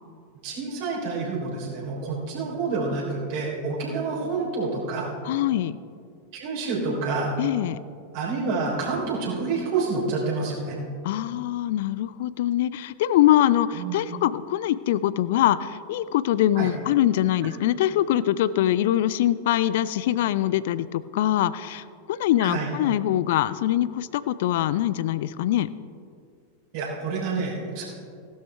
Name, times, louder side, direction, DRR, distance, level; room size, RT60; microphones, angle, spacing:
voice 1, 0.4-5.1 6.3-7.3 8.1-10.8 13.7-14.0 16.6-16.7 22.4-22.7 26.7-27.8, right 4 dB, 50° right, -3 dB, 3.4 m, -28 dB
voice 2, 5.2-5.8 7.4-7.8 11.0-25.7, left 12 dB, 55° left, 17 dB, 0.3 m, -23 dB
16.0 x 12.0 x 3.3 m, 2.4 s
figure-of-eight pair, 90°, 0 cm